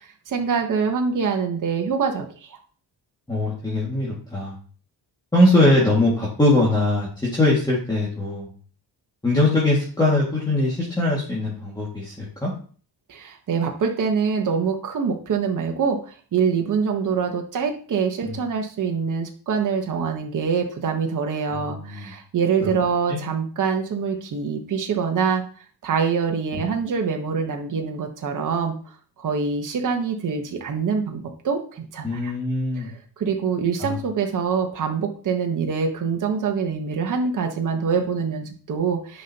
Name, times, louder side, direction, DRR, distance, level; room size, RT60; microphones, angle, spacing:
voice 1, 0.0-2.6 13.1-25.4 25.8-28.7 29.2-32.3 32.7-39.2, right 6 dB, 50° right, 3 dB, 1.2 m, -25 dB
voice 2, 3.3-4.5 5.3-8.5 9.2-12.5 18.2-18.3 21.5-22.1 22.6-22.7 23.1-23.2 26.6-26.7 32.0-32.9 33.8-33.9, left 1 dB, 10° left, -6 dB, 2.1 m, -21 dB
10.0 x 5.4 x 2.9 m, 0.42 s
wide cardioid pair, 155°, 41 cm